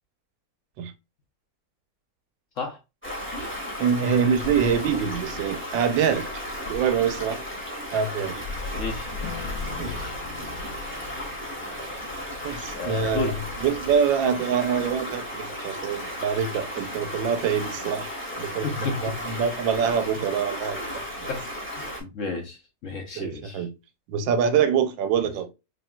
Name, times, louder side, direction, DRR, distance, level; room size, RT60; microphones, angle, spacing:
Stream, 3.0-22.0, left 1 dB, 5° left, 1.1 m, -34 dB
voice 1, 3.8-6.3 6.7-7.4 7.9-8.4 9.8-10.0 12.4-13.3 13.6-18.1 18.4-21.3 23.2-23.7 24.1-25.5, right 7 dB, 90° right, 1.4 m, -25 dB
voice 2, 8.7-9.1 9.8-10.2 12.8-13.4 18.6-19.4 20.1-20.2 21.3-21.4 21.7-23.7 25.2-25.3, left 3 dB, 55° left, 1.0 m, -33 dB
Acoustic guitar / Strum, 9.2-14.0, left 7 dB, 85° left, 1.6 m, -45 dB
5.0 x 2.8 x 2.3 m
omnidirectional pair, 2.0 m